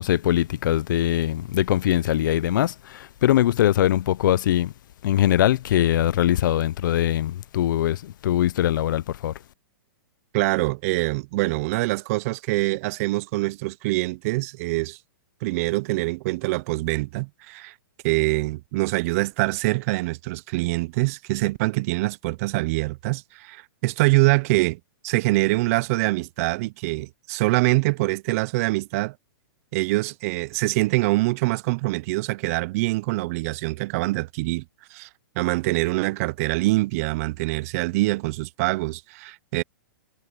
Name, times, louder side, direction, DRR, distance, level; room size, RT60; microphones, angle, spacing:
voice 1, 0.0-4.7 5.0-9.3, left 12 dB, 65° left, 0.6 m, -22 dB
voice 2, 10.3-15.0 15.4-17.7 18.0-29.1 29.7-34.6 34.9-35.1 35.4-39.6, right 22 dB, 40° right, 0.6 m, -24 dB
hypercardioid pair, 145°, 11 cm